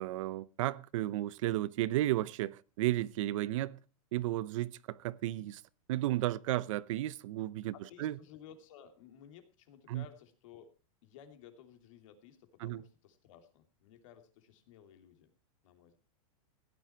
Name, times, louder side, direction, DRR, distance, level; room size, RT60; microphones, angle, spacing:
voice 1, 0.0-3.8 4.1-5.6 5.9-7.7 8.0-8.1 9.9-10.0 12.6-12.8, right 15 dB, 60° right, 0.7 m, -33 dB
voice 2, 7.7-10.7 11.0-15.3 15.6-16.0, left 9 dB, 60° left, 3.0 m, -56 dB
16.5 x 10.5 x 4.5 m
supercardioid pair, 160°, 19 cm